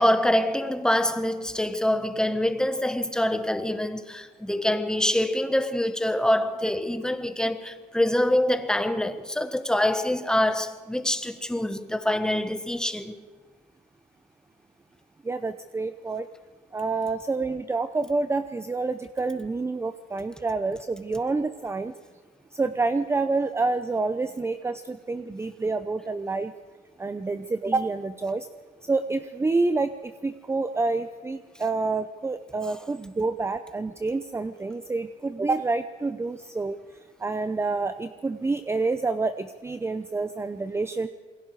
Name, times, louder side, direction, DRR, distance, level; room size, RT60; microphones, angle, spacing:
voice 1, 0.0-13.2, left 1 dB, 5° left, 1.4 m, -25 dB
voice 2, 15.2-16.3 16.7-21.9 22.5-26.5 27.0-28.5 28.9-36.8 37.2-41.1, right 3 dB, 15° right, 0.7 m, -28 dB
27.5 x 21.5 x 4.9 m
cardioid pair, 110°, 17 cm